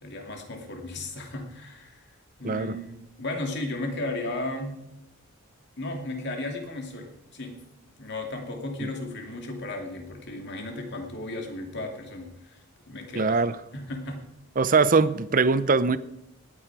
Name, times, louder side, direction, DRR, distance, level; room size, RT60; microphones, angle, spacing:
voice 1, 0.0-2.1 2.4-4.8 5.8-7.6 8.0-13.4 13.7-14.2, left 2 dB, 50° left, 3 dB, 2.5 m, -35 dB
voice 2, 2.4-2.8 13.1-13.5 14.6-16.0, right 4 dB, 40° right, 15 dB, 0.6 m, -21 dB
19.0 x 9.2 x 4.8 m, 0.83 s
head